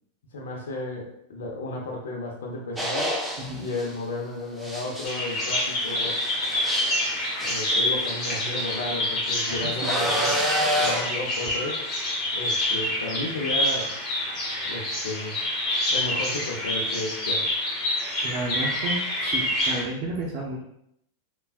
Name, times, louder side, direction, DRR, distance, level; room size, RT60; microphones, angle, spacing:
voice 1, 0.3-3.2 3.6-6.1 7.4-10.3 10.7-11.8 12.3-13.9 14.6-15.4 15.9-17.5, left 2 dB, 80° left, -1 dB, 0.6 m, -33 dB
sound 1, 2.8-3.9 4.6-8.9 9.8-11.2, equal, 5° right, 0.6 m, -29 dB
Bird vocalization bird call bird song, 5.0-19.8, left 1 dB, 35° left, 1.2 m, -27 dB
voice 2, 9.5-9.9 18.2-20.6, right 2 dB, 50° right, -2 dB, 0.5 m, -32 dB
3.3 x 2.3 x 2.4 m, 0.73 s
hypercardioid pair, 110°, 0 cm